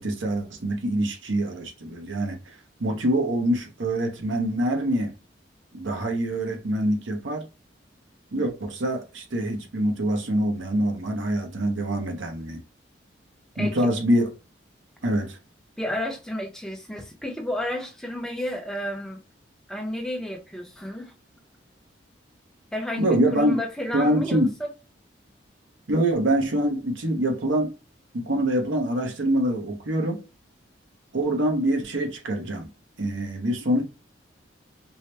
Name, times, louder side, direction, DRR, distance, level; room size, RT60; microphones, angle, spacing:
voice 1, 0.0-2.4 2.8-5.1 5.7-7.5 8.3-12.6 13.6-14.3 15.0-15.4 23.0-23.6 23.9-24.5 25.9-27.7 28.1-30.2 31.1-32.7 33.0-33.8, right 1 dB, 85° right, 0.9 m, -25 dB
voice 2, 15.8-19.2 19.7-21.1 22.7-24.7, left 1 dB, 5° left, 0.6 m, -31 dB
4.5 x 2.1 x 3.3 m
head